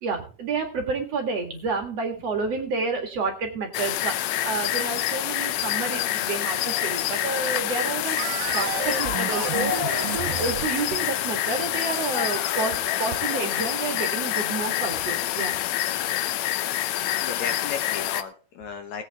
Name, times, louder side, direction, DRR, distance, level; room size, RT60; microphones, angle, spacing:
voice 1, 0.0-15.5, right 4 dB, 50° right, 4 dB, 2.7 m, -30 dB
sound 1, 3.7-18.2, left 13 dB, 90° left, 1.6 m, -27 dB
sound 2, 8.2-11.8, right 14 dB, 85° right, 2.4 m, -32 dB
voice 2, 17.2-19.0, left 6 dB, 65° left, 6 dB, 2.2 m, -35 dB
19.0 x 8.6 x 3.5 m, 0.37 s
omnidirectional pair, 4.0 m